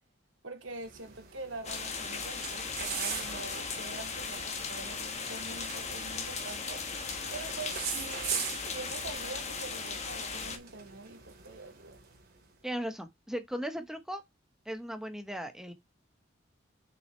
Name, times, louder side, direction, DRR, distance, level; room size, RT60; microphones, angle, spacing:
voice 1, 0.4-8.4 8.7-12.0, right 3 dB, 75° right, 2.2 m, -45 dB
sound 1, 0.7-12.5, right 7 dB, 50° right, 2.5 m, -42 dB
sound 2, 1.6-10.6, left 5 dB, 35° left, 1.3 m, -37 dB
voice 2, 12.6-14.2 14.7-15.7, equal, 5° right, 1.0 m, -37 dB
6.4 x 6.1 x 3.2 m
head